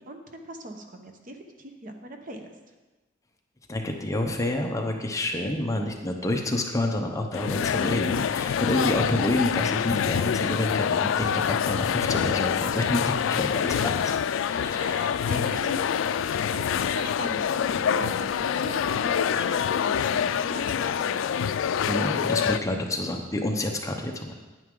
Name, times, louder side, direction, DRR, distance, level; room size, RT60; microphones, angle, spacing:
voice 1, 0.0-2.5 7.8-7.9 13.6-14.0 14.8-19.6 19.9-21.2, right 1 dB, 45° right, 4 dB, 1.0 m, -40 dB
voice 2, 3.7-13.6 14.4-14.8 21.8-24.3, left 1 dB, 15° left, 2 dB, 0.8 m, -28 dB
sound 1, 7.3-22.6, left 8 dB, 75° left, 0.3 m, -26 dB
9.6 x 9.2 x 3.8 m, 1.2 s
head